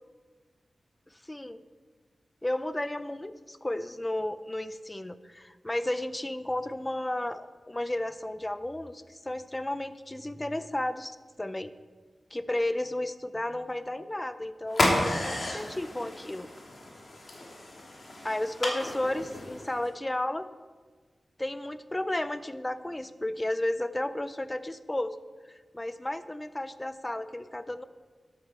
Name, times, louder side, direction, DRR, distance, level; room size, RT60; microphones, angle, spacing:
voice 1, 1.2-1.6 2.4-11.7 12.3-16.5 18.2-20.5 21.4-25.2 25.4-27.8, left 1 dB, 15° left, 12 dB, 0.5 m, -33 dB
sound 1, 14.7-19.9, left 1 dB, 50° left, 2.6 m, -32 dB
13.0 x 11.5 x 4.4 m, 1.4 s
wide cardioid pair, 130°, 0 cm